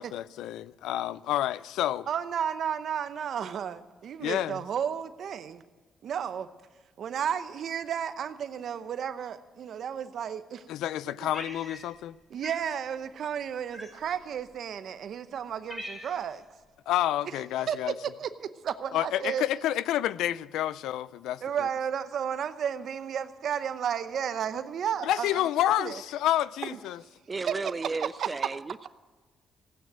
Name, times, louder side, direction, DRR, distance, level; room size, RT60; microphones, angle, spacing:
voice 1, 0.0-2.1 4.2-4.6 10.7-12.2 16.9-17.9 18.9-21.7 25.0-27.0, left 13 dB, 90° left, 0.4 m, -29 dB
voice 2, 2.1-5.6 6.0-6.5 7.0-10.7 11.2-11.3 12.3-16.4 17.3-17.8 18.0-19.7 21.4-25.5 25.8-26.0 26.6-27.1 27.5-27.6 28.0-28.3, right 8 dB, 65° right, 0.8 m, -33 dB
Cat, 11.3-12.1 12.4-12.7 13.7-14.2 14.9-15.0 15.4-16.4, equal, 20° left, 3.4 m, -42 dB
voice 3, 27.3-28.9, right 4 dB, 30° right, 0.4 m, -34 dB
16.0 x 9.2 x 7.6 m
cardioid pair, 90°, 0 cm